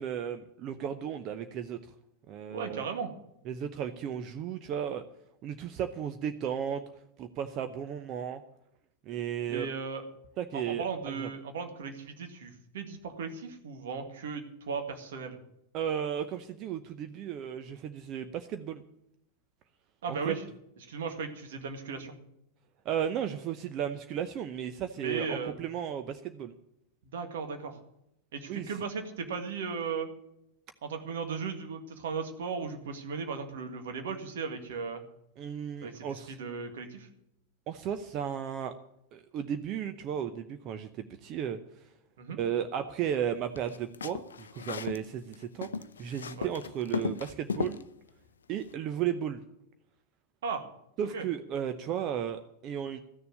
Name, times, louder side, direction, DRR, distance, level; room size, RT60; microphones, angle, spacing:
voice 1, 0.0-1.8 2.3-2.9 3.5-5.0 5.4-6.8 7.2-8.4 9.1-9.7 10.4-11.3 15.7-18.8 20.1-20.4 22.8-26.5 28.5-28.7 35.4-36.4 37.7-38.7 39.1-40.9 41.2-41.6 42.3-47.9 48.5-49.4 51.0-53.0, right 9 dB, 35° right, 9 dB, 0.8 m, -34 dB
voice 2, 2.5-3.1 9.5-10.1 10.5-15.4 20.0-20.4 20.9-22.1 25.0-25.5 27.0-27.8 28.3-30.1 30.8-35.0 35.8-37.1 42.2-42.4 46.4-46.5 50.4-50.6 51.1-51.2, right 5 dB, 60° right, 5 dB, 2.0 m, -36 dB
sound 1, 43.6-45.1 45.3-47.8, left 6 dB, 70° left, 0.5 m, -35 dB
14.0 x 6.9 x 9.6 m, 0.79 s
figure-of-eight pair, 90°, 0 cm